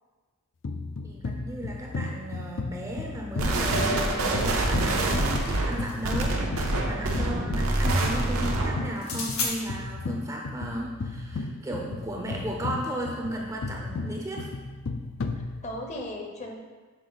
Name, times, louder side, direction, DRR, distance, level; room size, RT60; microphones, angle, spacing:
sound 1, 0.6-16.0, left 3 dB, 60° left, 0.4 m, -35 dB
voice 1, 1.0-14.5, right 1 dB, 15° right, -1 dB, 0.5 m, -35 dB
sound 2, 3.4-8.9, right 2 dB, 80° right, 0.8 m, -26 dB
sound 3, 5.3-6.2 9.0-9.5, left 4 dB, 80° left, 1.1 m, -34 dB
voice 2, 15.3-16.5, left 1 dB, 30° left, 2 dB, 0.7 m, -38 dB
6.7 x 4.1 x 3.9 m, 1.4 s
head